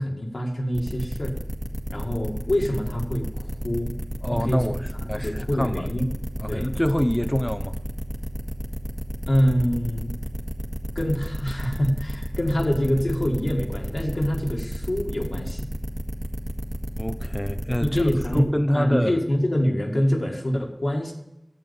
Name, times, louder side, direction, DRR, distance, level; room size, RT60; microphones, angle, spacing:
voice 1, 0.0-1.3 1.9-3.9 4.3-4.7 5.0-6.1 6.5-6.7 9.3-10.1 11.0-15.7 17.8-21.1, equal, 85° left, 1.9 m, -25 dB
sound 1, 0.7-18.4, equal, 30° right, 1.7 m, -31 dB
voice 2, 4.2-5.9 6.4-7.8 17.0-19.2, equal, 15° left, 0.5 m, -26 dB
11.0 x 8.2 x 7.0 m
wide cardioid pair, 45°, 0 cm